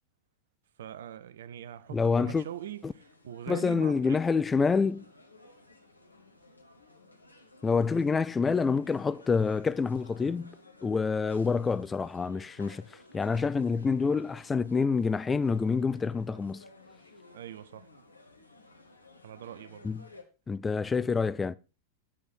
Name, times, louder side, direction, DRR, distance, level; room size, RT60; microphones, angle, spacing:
voice 1, 0.8-4.3 17.3-17.9 19.2-19.9, right 10 dB, 60° right, 0.6 m, -42 dB
sound 1, 1.6-20.2, left 2 dB, 80° left, 1.3 m, -56 dB
voice 2, 1.9-2.4 2.8-2.9 3.5-5.0 7.6-10.6 10.8-12.8 13.1-16.6 19.8-20.0 20.5-21.6, left 5 dB, 15° left, 0.4 m, -27 dB
8.6 x 8.0 x 4.2 m
figure-of-eight pair, 90°, 0 cm